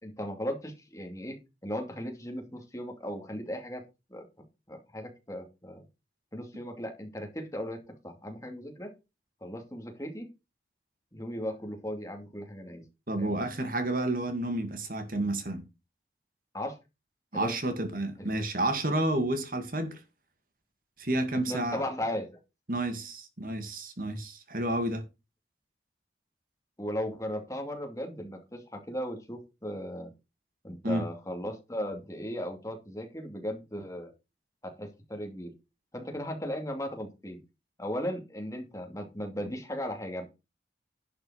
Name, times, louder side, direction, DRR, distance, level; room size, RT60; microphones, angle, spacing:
voice 1, 0.0-3.8 4.1-4.3 4.7-5.8 6.3-7.8 8.0-8.9 9.4-10.3 11.1-12.8 13.2-13.3 16.5-16.8 17.3-17.5 18.2-18.3 21.5-22.4 26.8-30.1 30.6-34.1 34.6-35.5 35.9-37.4 37.8-40.2, equal, 20° left, 2.4 m, -37 dB
voice 2, 13.1-15.6 17.3-20.0 21.0-21.8 22.7-25.0 30.8-31.0, right 1 dB, 50° right, 1.9 m, -30 dB
11.0 x 5.1 x 6.3 m
head